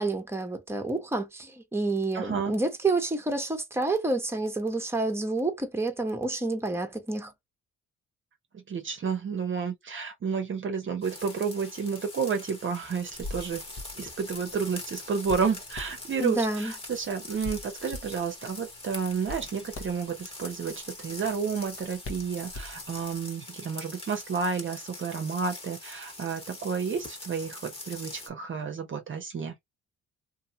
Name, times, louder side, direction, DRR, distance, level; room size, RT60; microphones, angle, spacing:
voice 1, 0.0-7.3 16.2-16.7, right 2 dB, 10° right, 0.9 m, -29 dB
voice 2, 2.1-2.5 8.5-13.6 14.0-29.6, right 6 dB, 40° right, 0.7 m, -31 dB
sound 1, 11.0-28.3, left 2 dB, 20° left, 1.3 m, -43 dB
Hands, 13.0-23.2, left 2 dB, 45° left, 0.9 m, -44 dB
2.6 x 2.6 x 2.7 m
cardioid pair, 90°, 30 cm